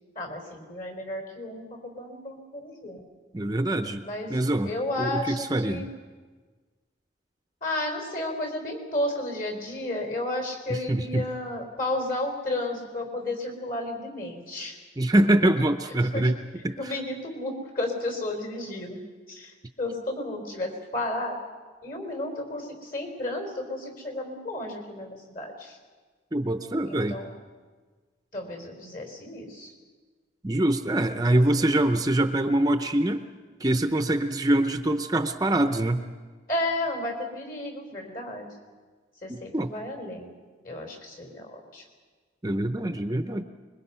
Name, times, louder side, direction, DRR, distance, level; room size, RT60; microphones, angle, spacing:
voice 1, 0.2-3.0 4.0-5.9 7.6-14.8 16.1-16.3 16.8-19.0 19.3-21.3 21.8-25.8 26.8-27.3 28.3-29.7 36.5-38.5 39.2-40.3 40.6-41.8, left 1 dB, 50° left, 4 dB, 4.1 m, -33 dB
voice 2, 3.3-4.0 4.3-4.7 5.0-5.9 10.7-11.2 15.0-16.3 16.6-17.0 26.3-27.2 30.4-33.2 33.6-36.0 39.3-39.7 42.4-43.4, right 1 dB, 20° right, 8 dB, 0.6 m, -24 dB
24.5 x 22.0 x 5.6 m, 1.4 s
head